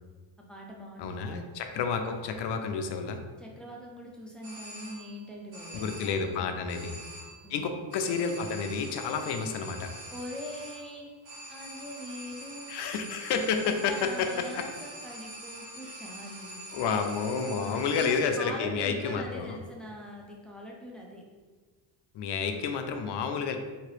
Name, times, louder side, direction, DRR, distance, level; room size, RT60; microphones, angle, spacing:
voice 1, 0.5-1.4 3.4-6.7 7.4-7.8 10.1-11.1 11.5-12.8 13.6-16.7 17.5-21.2, equal, ahead, -2 dB, 0.4 m, -43 dB
voice 2, 1.0-3.2 5.7-7.0 7.5-9.9 12.7-14.3 14.5-14.6 16.7-19.6 22.1-23.6, left 5 dB, 60° left, 6 dB, 0.5 m, -30 dB
sound 1, 4.4-5.2 5.5-6.3 6.7-7.5 7.9-18.4, right 1 dB, 90° right, 1.4 m, -45 dB
2.9 x 2.8 x 3.1 m, 1.4 s
cardioid pair, 120°, 46 cm